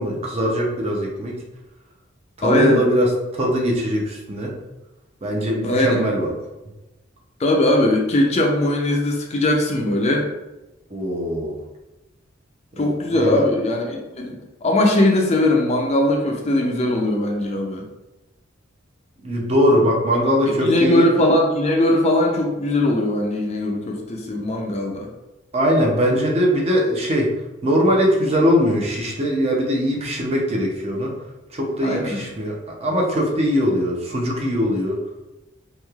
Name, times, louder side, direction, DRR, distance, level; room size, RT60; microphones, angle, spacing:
voice 1, 0.0-1.4 2.4-4.5 5.2-6.3 10.9-11.6 12.8-13.4 19.2-21.1 25.5-27.3 27.6-31.1 31.5-32.6 32.8-35.0, equal, 30° right, -1 dB, 0.5 m, -21 dB
voice 2, 2.4-2.9 5.6-6.0 7.4-10.3 12.8-14.3 14.6-17.8 20.6-25.1 31.8-32.2, left 1 dB, 35° left, 1 dB, 0.4 m, -20 dB
3.1 x 2.8 x 2.3 m, 1.0 s
head